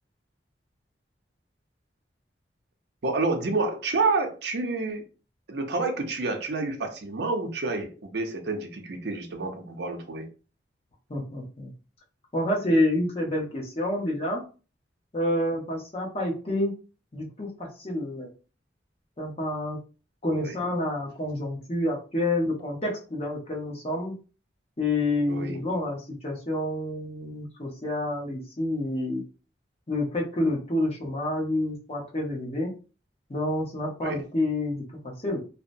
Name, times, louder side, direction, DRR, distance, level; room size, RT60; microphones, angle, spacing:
voice 1, 3.0-5.1 5.5-10.3 20.4-20.6 25.3-25.6 34.0-34.2, right 3 dB, 65° right, 0.6 m, -29 dB
voice 2, 11.1-11.7 12.3-14.4 15.1-16.7 17.1-18.3 19.2-19.8 20.2-24.1 24.8-29.2 29.9-32.7 33.3-35.4, left 1 dB, 35° left, 0.8 m, -28 dB
2.8 x 2.0 x 2.6 m
head